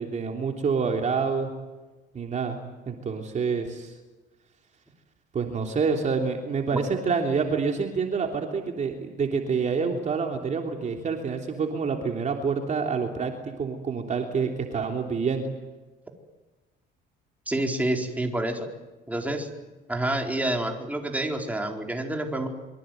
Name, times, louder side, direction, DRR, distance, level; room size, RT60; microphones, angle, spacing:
voice 1, 0.0-1.5 2.1-2.6 2.8-3.9 5.3-15.5, right 5 dB, 40° right, 3 dB, 3.3 m, -27 dB
voice 2, 17.5-18.7 19.1-19.5 19.9-22.5, right 1 dB, 10° right, 2 dB, 4.4 m, -28 dB
26.5 x 24.0 x 9.3 m, 1.2 s
cardioid pair, 120°, 19 cm